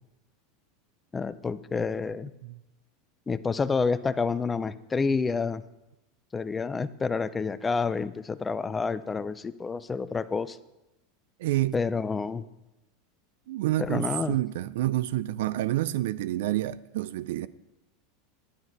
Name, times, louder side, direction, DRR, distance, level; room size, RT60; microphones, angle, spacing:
voice 1, 1.1-2.3 3.3-5.6 6.3-10.6 11.7-12.4 13.8-14.3, left 4 dB, 20° left, 0.5 m, -29 dB
voice 2, 11.4-11.8 13.5-17.5, right 15 dB, 75° right, 0.4 m, -28 dB
10.5 x 9.6 x 4.7 m
hypercardioid pair, 105°, 0 cm